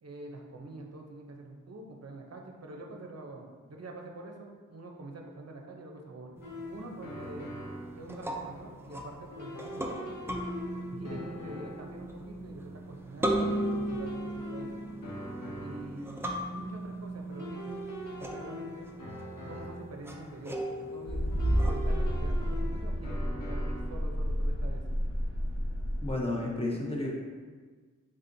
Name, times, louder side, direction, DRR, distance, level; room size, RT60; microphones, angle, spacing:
voice 1, 0.0-6.4 6.7-7.5 7.9-10.0 11.0-14.8 15.6-17.8 18.2-18.9 19.5-21.2 21.6-24.8, right 2 dB, 55° right, 1 dB, 0.6 m, -45 dB
sound 1, 6.4-8.0 9.3-12.0 13.3-16.0 17.3-20.0 21.3-24.0, equal, 90° left, 0.7 m, -42 dB
sound 2, 6.4-21.9, right 1 dB, 10° right, 0.4 m, -38 dB
sound 3, 21.1-26.1, equal, 45° left, 0.9 m, -30 dB
voice 2, 26.0-27.1, left 2 dB, 20° left, -3 dB, 0.8 m, -32 dB
4.1 x 3.7 x 2.6 m, 1.5 s
wide cardioid pair, 75°, 31 cm